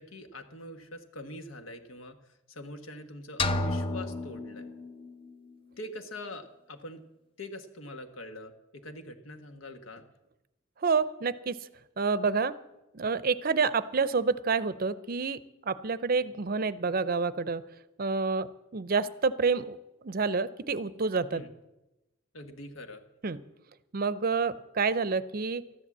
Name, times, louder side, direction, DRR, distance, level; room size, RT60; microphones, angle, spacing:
voice 1, 0.0-2.2 2.5-4.7 5.8-7.0 7.4-10.0 16.0-16.1 21.3-21.5 22.3-23.0, left 1 dB, 85° left, 7 dB, 1.4 m, -44 dB
sound 1, 3.4-5.3, left 2 dB, 25° left, 0.8 m, -32 dB
voice 2, 10.8-11.6 12.0-12.6 12.9-15.4 15.7-17.6 18.0-18.5 18.7-19.8 20.0-21.4 23.2-23.4 23.9-25.6, right 4 dB, 45° right, 16 dB, 0.6 m, -28 dB
13.5 x 11.0 x 7.3 m, 0.97 s
head